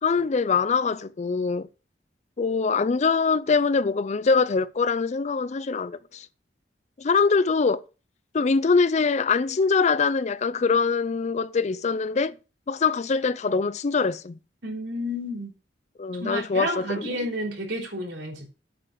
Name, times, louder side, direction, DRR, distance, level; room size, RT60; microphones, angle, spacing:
voice 1, 0.0-1.7 2.4-6.3 7.0-7.8 8.3-12.3 12.7-14.4 16.0-17.1, left 4 dB, 40° left, 0.4 m, -23 dB
voice 2, 14.6-15.5 16.2-18.5, equal, 85° right, 3.6 m, -31 dB
8.6 x 5.3 x 6.9 m
head